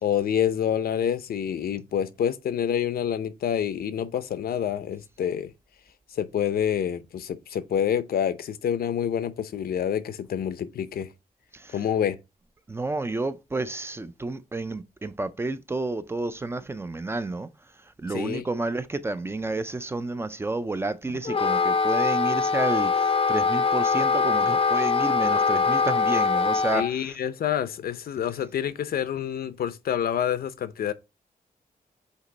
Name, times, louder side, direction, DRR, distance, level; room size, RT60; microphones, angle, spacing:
voice 1, 0.0-5.5 6.2-11.1 11.7-12.2 18.1-18.5 21.1-21.2 26.7-30.9, left 9 dB, 90° left, 0.7 m, -27 dB
voice 2, 12.7-17.5 18.0-27.1, right 2 dB, 15° right, 0.4 m, -30 dB
Wind instrument woodwind instrument, 21.2-26.9, left 5 dB, 40° left, 0.5 m, -23 dB
8.1 x 3.0 x 3.9 m
wide cardioid pair, 180°, 15 cm